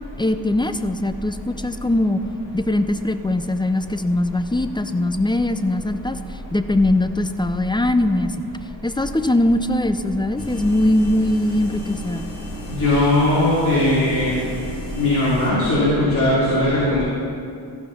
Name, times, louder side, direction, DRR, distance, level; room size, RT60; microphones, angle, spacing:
voice 1, 0.2-2.2 2.5-8.5 8.8-12.2, left 1 dB, 10° left, 10 dB, 0.5 m, -21 dB
sound 1, 10.4-15.5, left 1 dB, 60° left, 2.5 m, -36 dB
voice 2, 12.7-14.4 15.0-17.0, left 1 dB, 45° left, -7 dB, 2.7 m, -18 dB
15.0 x 5.9 x 5.7 m, 2.4 s
cardioid pair, 60°, 42 cm